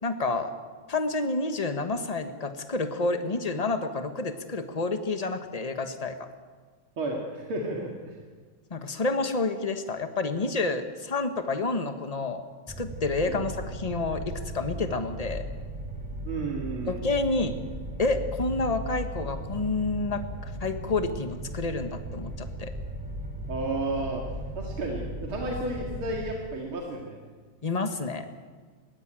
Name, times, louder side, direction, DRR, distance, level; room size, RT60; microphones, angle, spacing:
voice 1, 0.0-0.5 0.9-6.1 8.7-12.4 12.8-14.2 14.5-15.4 16.9-17.5 18.0-22.7 27.6-28.3, left 3 dB, 25° left, 7 dB, 1.1 m, -29 dB
voice 2, 7.0-8.2 13.3-13.4 16.2-17.1 23.5-24.2 24.5-27.2, right 2 dB, 75° right, -1 dB, 3.1 m, -32 dB
sound 1, 12.7-26.3, right 1 dB, 5° right, 3.7 m, -37 dB
20.0 x 16.0 x 9.1 m, 1.5 s
omnidirectional pair, 2.3 m